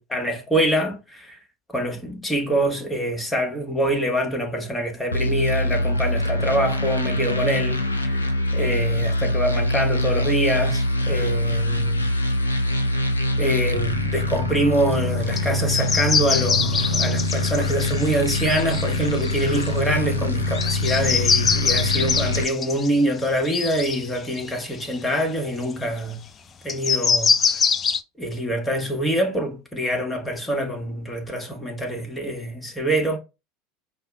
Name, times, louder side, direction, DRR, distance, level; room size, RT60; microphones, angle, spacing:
voice 1, 0.0-1.4 1.7-12.1 13.4-26.2 26.6-27.6 28.2-33.2, right 1 dB, 10° left, 1.2 m, -25 dB
sound 1, 5.1-22.4, left 1 dB, 90° left, 0.5 m, -24 dB
sound 2, 15.4-15.5 15.7-19.9 20.5-25.1 25.6-25.7 26.7-28.0, left 6 dB, 30° left, 0.4 m, -24 dB
4.8 x 2.2 x 3.6 m
figure-of-eight pair, 75°, 0 cm